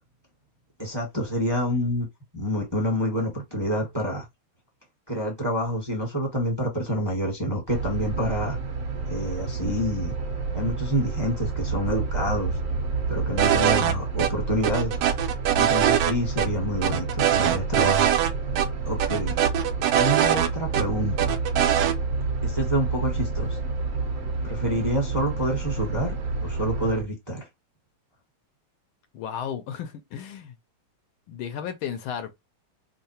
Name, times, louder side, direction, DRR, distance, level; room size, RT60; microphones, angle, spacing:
voice 1, 0.8-2.1 2.3-4.2 5.1-8.6 9.1-10.2 10.5-12.6 13.1-15.0 15.5-18.1 18.8-19.4 19.9-21.3 22.4-23.6 24.4-26.1 26.4-27.4, equal, 15° right, 0.9 m, -27 dB
sound 1, 7.7-27.0, right 4 dB, 50° right, 1.0 m, -29 dB
sound 2, 13.4-13.9 14.2-14.3 14.6-16.1 16.4-16.5 16.8-18.3 18.6-18.7 19.0-20.8 21.2-21.9, right 11 dB, 75° right, 1.1 m, -22 dB
voice 2, 29.1-30.5 31.3-32.3, left 8 dB, 80° left, 1.4 m, -34 dB
3.7 x 2.0 x 4.2 m
omnidirectional pair, 2.3 m